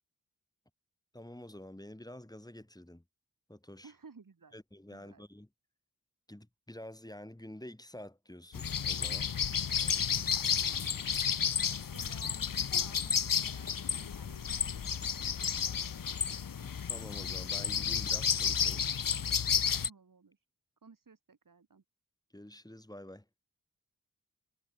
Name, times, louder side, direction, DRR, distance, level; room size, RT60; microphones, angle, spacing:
voice 1, 1.1-3.0 3.5-3.9 4.5-5.5 6.3-9.3 16.6-18.9 22.3-23.3, left 1 dB, 10° left, 7.5 m, -48 dB
voice 2, 3.8-4.6 4.9-5.2 9.6-11.5 11.9-16.1 19.8-20.4 20.8-21.8, right 5 dB, 65° right, 6.3 m, -58 dB
sound 1, 8.5-19.9, left 7 dB, 65° left, 1.1 m, -32 dB
wide cardioid pair, 80°, 35 cm